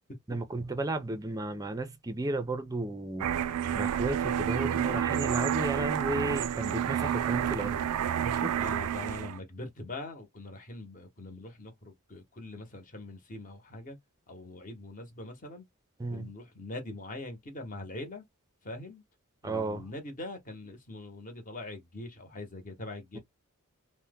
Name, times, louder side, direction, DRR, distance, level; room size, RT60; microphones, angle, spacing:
voice 1, 0.3-3.3 3.7-7.8 8.2-8.6 16.0-16.3 19.4-19.9 23.1-23.2, right 2 dB, 15° right, 0.4 m, -33 dB
sound 1, 3.2-9.4, right 9 dB, 85° right, 0.3 m, -30 dB
voice 2, 8.5-14.0 14.3-15.6 16.1-18.2 18.6-19.0 19.4-23.2, left 2 dB, 35° left, 0.9 m, -42 dB
2.8 x 2.1 x 3.4 m
head